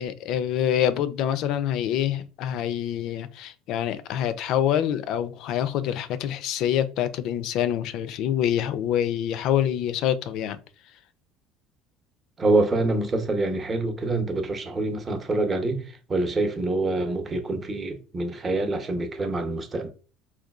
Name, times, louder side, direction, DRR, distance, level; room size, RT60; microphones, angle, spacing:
voice 1, 0.0-10.6, left 10 dB, 65° left, 0.4 m, -26 dB
voice 2, 12.4-15.8 16.1-19.9, right 2 dB, 30° right, 0.7 m, -26 dB
3.8 x 2.3 x 2.3 m
supercardioid pair, 90°, 0 cm